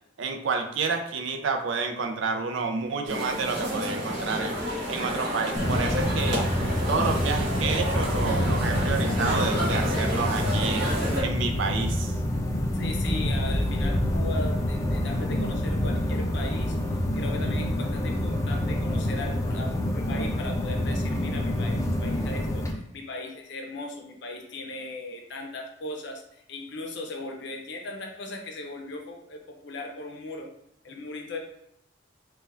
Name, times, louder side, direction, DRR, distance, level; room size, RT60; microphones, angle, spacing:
voice 1, 0.2-4.6 4.9-6.5 6.9-10.8 11.2-12.2, right 4 dB, 70° right, 5 dB, 0.4 m, -29 dB
sound 1, 3.1-11.2, equal, 55° right, 1.0 m, -30 dB
sound 2, 5.6-22.7, left 1 dB, 15° left, 0.3 m, -27 dB
voice 2, 12.7-30.5 30.8-31.4, left 2 dB, 60° left, 2 dB, 0.6 m, -38 dB
4.4 x 2.2 x 2.5 m, 0.77 s
head